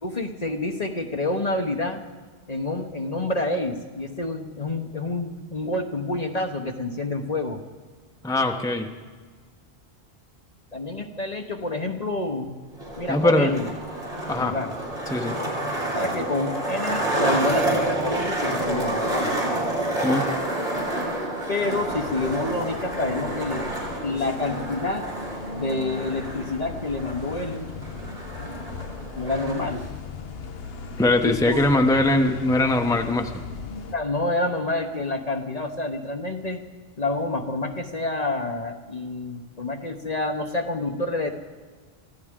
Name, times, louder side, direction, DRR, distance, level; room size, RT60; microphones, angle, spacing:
voice 1, 0.0-2.0 2.5-7.6 10.7-12.6 13.0-13.7 14.4-14.7 15.9-19.3 21.5-23.7 24.0-25.1 25.5-27.8 29.1-29.9 31.2-31.6 33.9-36.6 37.0-41.3, left 2 dB, 40° left, 4 dB, 1.1 m, -28 dB
voice 2, 8.2-8.9 13.1-13.6 14.3-14.5 15.1-15.4 20.0-20.2 31.0-33.3, left 2 dB, 5° left, 4 dB, 0.9 m, -21 dB
Skateboard, 12.7-29.7, right 1 dB, 75° right, 3.7 m, -29 dB
sound 1, 21.9-34.0, left 4 dB, 70° left, 1.2 m, -38 dB
24.0 x 15.5 x 3.7 m, 1.5 s
omnidirectional pair, 1.1 m